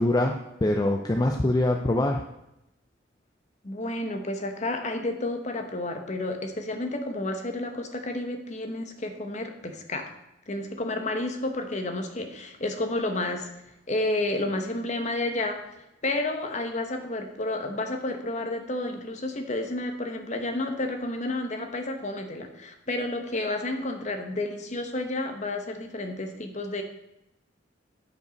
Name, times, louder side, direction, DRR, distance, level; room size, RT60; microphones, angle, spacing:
voice 1, 0.0-2.2, left 1 dB, 20° left, 3 dB, 0.4 m, -24 dB
voice 2, 3.6-10.1 10.5-13.5 13.9-15.6 16.0-26.8, left 2 dB, 40° left, 5 dB, 0.9 m, -31 dB
9.4 x 5.3 x 5.1 m, 0.88 s
head